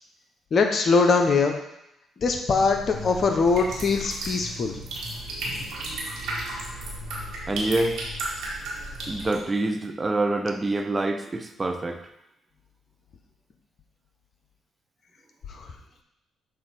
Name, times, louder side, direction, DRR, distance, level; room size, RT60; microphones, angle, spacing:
voice 1, 0.5-1.6 2.2-4.8 15.5-15.6, left 4 dB, 55° left, 4 dB, 0.8 m, -22 dB
sound 1, 2.5-9.4, right 1 dB, 75° right, 1.6 m, -34 dB
voice 2, 7.5-8.0 9.1-12.0, right 2 dB, 30° right, 6 dB, 0.7 m, -26 dB
7.1 x 2.7 x 5.1 m, 0.84 s
hypercardioid pair, 50°, 0 cm